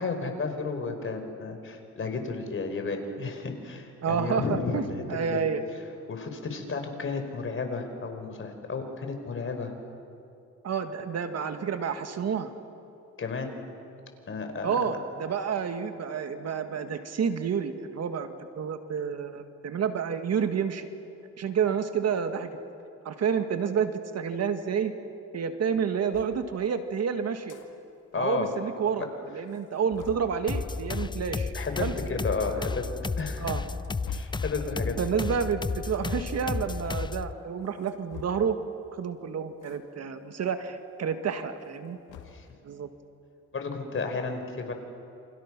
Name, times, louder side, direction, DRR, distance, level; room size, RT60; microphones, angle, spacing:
voice 1, 0.0-4.8 5.1-5.5 6.1-9.7 13.2-13.5 14.3-15.0 28.1-28.5 31.5-32.9 33.2-33.6 34.1-35.0 42.3-42.5 43.5-44.7, left 4 dB, 45° left, 6 dB, 4.3 m, -32 dB
voice 2, 4.0-4.8 5.1-5.6 10.6-12.5 14.6-20.9 21.4-22.5 23.1-24.9 25.3-27.6 28.2-31.5 31.8-31.9 32.4-32.7 33.4-33.6 35.0-38.6 39.0-42.0 42.6-42.9, right 7 dB, 55° right, 8 dB, 1.8 m, -29 dB
sound 1, 26.1-26.4 27.3-27.7 28.0-28.1 28.3-28.4 29.0-29.1 29.5-30.3 31.5-31.7 32.6-32.7 33.4-34.5 35.6-35.9 37.6-38.6 39.6-39.8 40.2-40.3 41.5-42.5, left 9 dB, 85° left, 2.2 m, -45 dB
sound 2, 30.5-37.3, left 4 dB, 15° left, 0.5 m, -33 dB
28.5 x 26.5 x 6.1 m, 2.6 s
cardioid pair, 90°, 30 cm